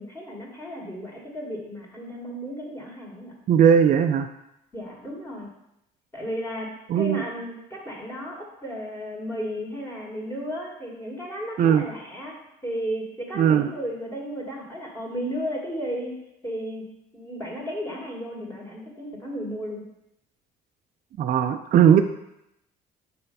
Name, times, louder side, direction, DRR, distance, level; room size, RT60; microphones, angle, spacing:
voice 1, 0.0-3.3 4.7-5.5 6.1-6.7 6.9-12.3 12.6-16.1 16.4-16.8 17.1-19.8, equal, 15° left, -3 dB, 2.0 m, -34 dB
voice 2, 3.5-4.3 6.9-7.2 11.6-11.8 13.4-13.7 21.2-22.0, right 8 dB, 50° right, 6 dB, 0.4 m, -18 dB
6.6 x 4.4 x 5.4 m, 0.84 s
cardioid pair, 110°, 17 cm